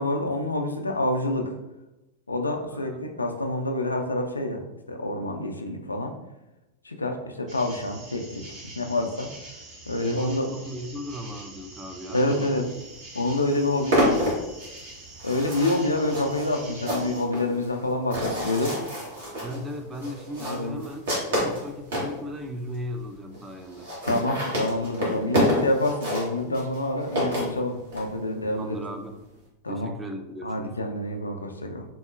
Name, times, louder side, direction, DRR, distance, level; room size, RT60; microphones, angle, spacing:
voice 1, 0.0-1.5 2.3-6.1 6.8-9.3 9.9-10.5 12.1-12.7 13.1-14.2 15.2-18.7 20.4-20.8 24.0-28.8 29.6-29.9 30.4-31.9, left 2 dB, 80° left, 4 dB, 0.3 m, -27 dB
voice 2, 2.7-3.2 9.9-12.6 13.1-13.3 19.4-23.9 28.5-29.2 29.7-30.8, equal, 15° right, 5 dB, 0.3 m, -36 dB
sound 1, 7.5-17.2, right 2 dB, 35° right, 0.8 m, -45 dB
sound 2, 12.9-13.0 13.3-22.1 22.7-22.8 23.0-23.1 23.3-23.4 23.7-28.1, equal, 60° right, 1.1 m, -28 dB
3.7 x 2.0 x 2.4 m, 0.96 s
figure-of-eight pair, 90°, 0 cm